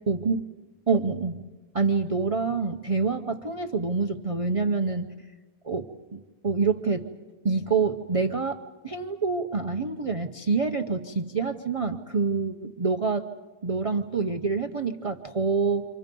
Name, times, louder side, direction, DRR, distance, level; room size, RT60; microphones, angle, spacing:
voice 1, 0.1-0.4 0.9-1.4 1.7-5.1 5.6-7.1 7.4-8.6 8.8-13.3 13.6-15.9, right 4 dB, 35° right, 5 dB, 0.6 m, -26 dB
29.5 x 26.0 x 5.3 m, 1.2 s
omnidirectional pair, 1.6 m